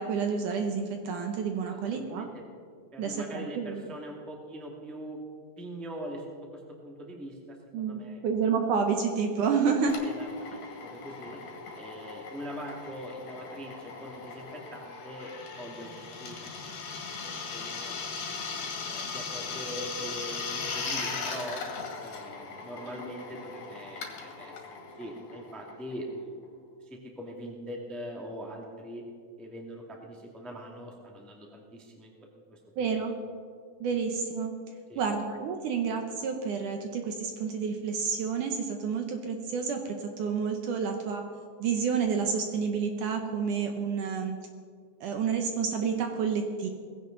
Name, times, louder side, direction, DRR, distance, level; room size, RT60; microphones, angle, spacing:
voice 1, 0.0-2.3 3.0-3.9 7.7-10.0 32.8-33.1 33.8-34.5 35.0-41.2 41.6-44.4 45.0-46.7, right 6 dB, 70° right, 4 dB, 2.2 m, -29 dB
voice 2, 1.9-2.3 2.9-5.2 5.6-6.2 6.5-8.2 10.0-11.4 11.7-16.5 16.9-18.3 18.8-21.6 22.0-24.6 25.0-26.4 26.8-29.0 29.4-33.0 34.9-35.0, equal, ahead, -1 dB, 1.1 m, -42 dB
Drill, 9.9-26.2, left 5 dB, 70° left, 3.7 m, -39 dB
19.5 x 16.0 x 4.0 m, 2.1 s
omnidirectional pair, 4.4 m